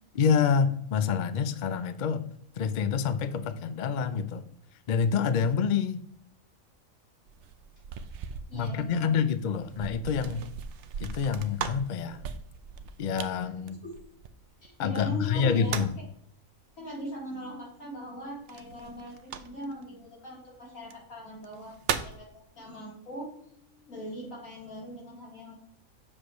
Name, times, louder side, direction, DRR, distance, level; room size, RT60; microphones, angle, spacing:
voice 1, 0.1-2.2 2.6-4.4 4.9-6.0 8.5-10.4 11.0-12.3 13.0-13.8 14.8-15.9, left 6 dB, 60° left, 12 dB, 0.4 m, -27 dB
sound 1, 7.3-14.7 15.3-16.1 18.5-19.8 20.8-20.9 21.4-22.3, right 7 dB, 65° right, 0.8 m, -38 dB
voice 2, 8.5-9.1 13.7-13.9 14.6-15.8 16.8-21.7 22.0-23.3 23.6-25.5, equal, 75° left, -5 dB, 3.8 m, -40 dB
7.6 x 6.3 x 3.1 m, 0.67 s
omnidirectional pair, 1.4 m